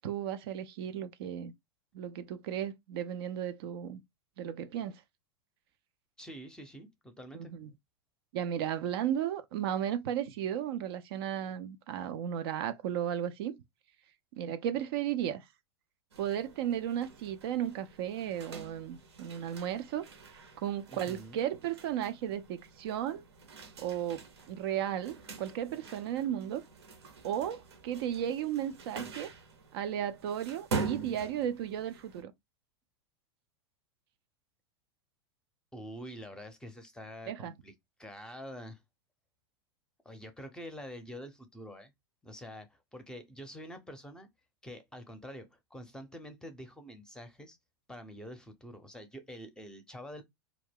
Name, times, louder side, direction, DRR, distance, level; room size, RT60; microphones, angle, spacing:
voice 1, 0.0-1.5 1.9-4.0 4.4-5.0 7.3-7.7 8.3-13.6 14.4-15.5 16.2-20.0 20.6-23.2 23.8-26.6 27.2-29.3 29.7-32.3 37.3-37.5, right 10 dB, 60° right, 0.4 m, -34 dB
voice 2, 6.2-7.5 20.9-21.4 35.7-37.7 38.0-38.8 40.0-41.9 42.2-44.3 44.6-47.6 47.9-50.2, equal, 5° left, 0.6 m, -46 dB
sound 1, 16.1-32.2, right 4 dB, 75° right, 0.8 m, -44 dB
2.3 x 2.1 x 3.4 m
hypercardioid pair, 100°, 14 cm